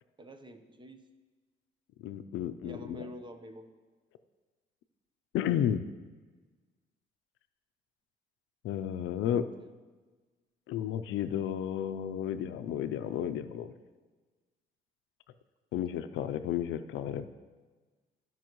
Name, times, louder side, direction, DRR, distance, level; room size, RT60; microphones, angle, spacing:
voice 1, 0.2-1.0 2.6-3.7 9.2-9.5, equal, 25° right, 7 dB, 0.8 m, -47 dB
voice 2, 2.0-3.0 5.3-5.8 8.6-9.4 10.7-13.7 15.7-17.3, left 10 dB, 85° left, 11 dB, 0.5 m, -32 dB
14.5 x 5.4 x 3.1 m, 1.3 s
cardioid pair, 90°, 20 cm